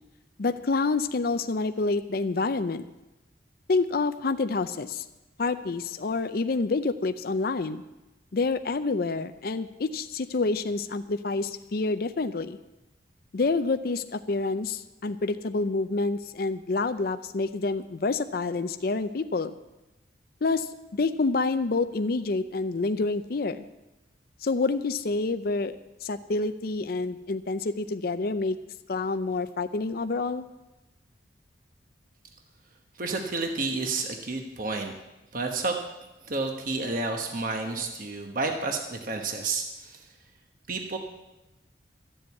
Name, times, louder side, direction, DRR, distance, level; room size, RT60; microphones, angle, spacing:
voice 1, 0.4-2.8 3.7-5.1 5.4-7.8 8.3-12.6 13.3-19.5 20.4-23.6 24.4-28.6 28.9-30.5, left 3 dB, 55° left, 10 dB, 0.5 m, -28 dB
voice 2, 33.0-34.9 35.3-35.8 36.2-40.1 40.7-41.0, right 3 dB, 45° right, 3 dB, 1.1 m, -30 dB
13.5 x 7.8 x 8.2 m, 1.0 s
head